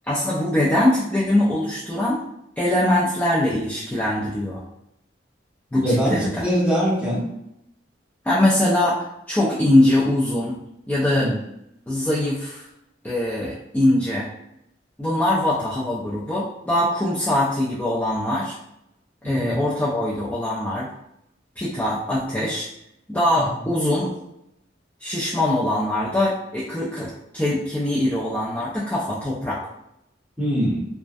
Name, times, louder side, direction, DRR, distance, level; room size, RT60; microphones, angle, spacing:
voice 1, 0.1-2.2 2.6-4.6 5.7-6.4 8.2-10.6 10.9-11.3 11.9-12.6 13.0-14.3 15.0-18.5 19.2-20.9 21.6-22.7 23.1-24.1 25.0-29.6, left 1 dB, 10° left, -8 dB, 0.3 m, -22 dB
voice 2, 5.8-7.2 11.1-11.4 19.2-19.6 23.3-23.5 30.4-30.8, equal, 10° right, -7 dB, 0.8 m, -23 dB
2.3 x 2.1 x 2.5 m, 0.82 s
head